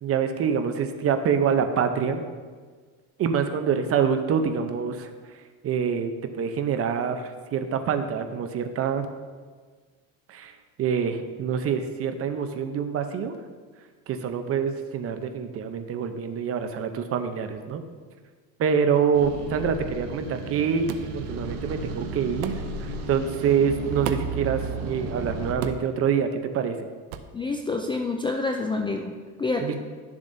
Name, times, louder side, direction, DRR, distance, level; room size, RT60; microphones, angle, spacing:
voice 1, 0.0-2.2 3.2-5.1 5.6-9.1 10.3-13.4 14.1-17.8 18.6-26.3 26.5-26.8 29.6-29.7, right 7 dB, 40° right, 7 dB, 0.7 m, -26 dB
sound 1, 19.1-25.5, right 3 dB, 70° right, 1.2 m, -34 dB
sound 2, 20.9-21.1 22.4-22.6 24.0-24.4 25.6-25.9 27.1-27.3, right 10 dB, 85° right, 0.7 m, -33 dB
voice 2, 27.3-29.1 29.4-29.8, left 3 dB, 15° left, 3 dB, 0.3 m, -27 dB
11.5 x 7.1 x 2.7 m, 1.5 s
cardioid pair, 125°, 38 cm